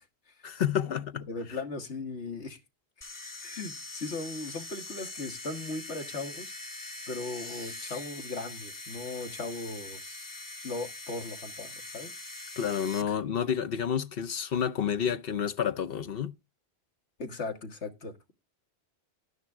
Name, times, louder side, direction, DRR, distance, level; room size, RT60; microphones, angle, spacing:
voice 1, 0.4-1.3 12.6-16.3, left 8 dB, 60° left, 0.9 m, -29 dB
voice 2, 1.3-2.6 3.4-6.5 7.1-10.3 10.6-12.1 17.2-18.3, left 3 dB, 90° left, 2.0 m, -38 dB
sound 1, 3.0-13.0, left 2 dB, 20° left, 0.8 m, -43 dB
12.5 x 9.3 x 3.6 m
omnidirectional pair, 1.1 m